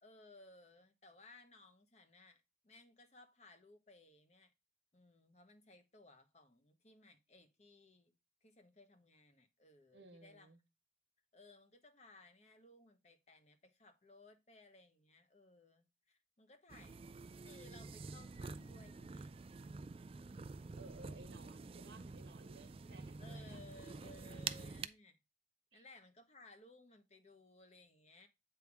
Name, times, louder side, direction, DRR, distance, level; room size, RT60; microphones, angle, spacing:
voice 1, 0.0-4.5 4.9-8.1 8.4-10.5 11.3-17.0 17.4-19.3 23.2-25.2 25.7-28.3, left 2 dB, 35° left, 1.0 m, -61 dB
voice 2, 9.9-10.6 20.8-23.6 24.3-24.4 25.7-25.8, right 2 dB, 75° right, 1.2 m, -59 dB
sound 1, 16.7-24.9, right 4 dB, 30° right, 0.3 m, -48 dB
8.3 x 3.5 x 4.7 m
head